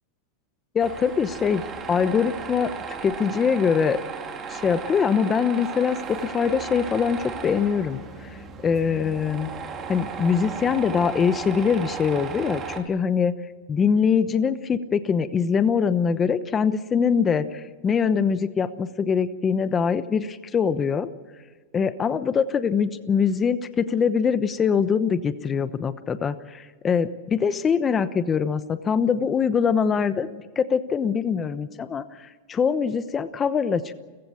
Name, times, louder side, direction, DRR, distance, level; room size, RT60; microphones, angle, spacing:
voice 1, 0.7-1.6 1.9-2.7 3.0-4.0 4.5-9.5 9.9-13.3 13.7-21.1 21.7-30.3 30.6-33.9, left 6 dB, 20° left, 12 dB, 1.0 m, -23 dB
Tools, 0.8-12.8, right 5 dB, 20° right, 3.5 m, -35 dB
30.0 x 15.5 x 7.2 m, 1.4 s
supercardioid pair, 140°, 0 cm